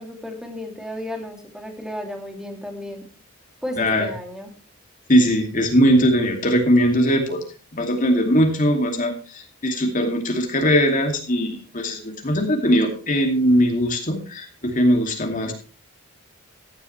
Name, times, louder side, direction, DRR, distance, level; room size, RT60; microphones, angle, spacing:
voice 1, 0.0-3.1 3.6-4.5, left 1 dB, 5° right, 4 dB, 2.6 m, -33 dB
voice 2, 3.8-4.1 5.1-7.4 7.7-15.5, equal, 40° left, 3 dB, 2.6 m, -20 dB
16.0 x 11.5 x 3.3 m, 0.37 s
head